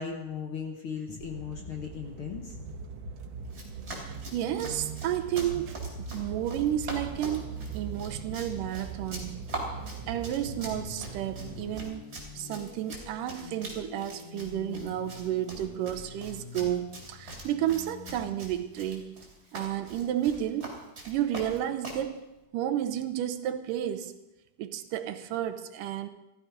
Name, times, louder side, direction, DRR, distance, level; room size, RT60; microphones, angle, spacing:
voice 1, 0.0-2.6, left 6 dB, 60° left, 2 dB, 1.5 m, -37 dB
sound 1, 1.2-11.9, right 5 dB, 70° right, 1.9 m, -41 dB
Run, 3.5-22.1, right 2 dB, 30° right, 3.9 m, -43 dB
voice 2, 4.0-5.7 6.0-9.4 10.1-12.1 12.4-19.2 19.5-20.8 21.1-22.2 22.5-24.1 24.6-26.1, right 11 dB, 90° right, 10 dB, 2.5 m, -32 dB
sound 2, 10.0-19.9, left 8 dB, 75° left, 2.3 m, -48 dB
15.5 x 13.5 x 5.0 m, 0.98 s
omnidirectional pair, 3.7 m